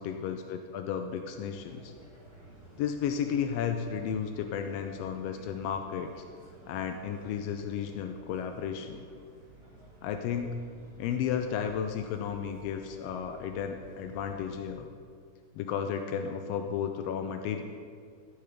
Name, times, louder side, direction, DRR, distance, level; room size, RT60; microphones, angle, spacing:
voice 1, 0.0-1.9 2.8-6.2 6.7-9.0 10.0-10.6 11.0-14.9 15.5-17.6, left 8 dB, 85° left, 6 dB, 1.4 m, -33 dB
sound 1, 1.5-14.7, right 1 dB, 25° left, 0.7 m, -54 dB
14.0 x 4.9 x 5.0 m, 2.1 s
omnidirectional pair, 3.4 m